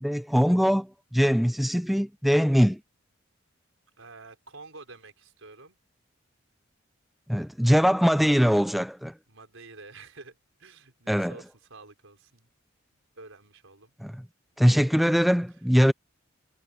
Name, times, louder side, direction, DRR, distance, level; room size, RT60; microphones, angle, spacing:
voice 1, 0.0-2.8 7.3-9.1 11.1-11.3 14.0-14.2 14.6-15.9, equal, ahead, 0.4 m, -22 dB
voice 2, 4.0-5.8 9.3-12.5 13.2-13.9, right 3 dB, 80° right, 4.7 m, -49 dB
head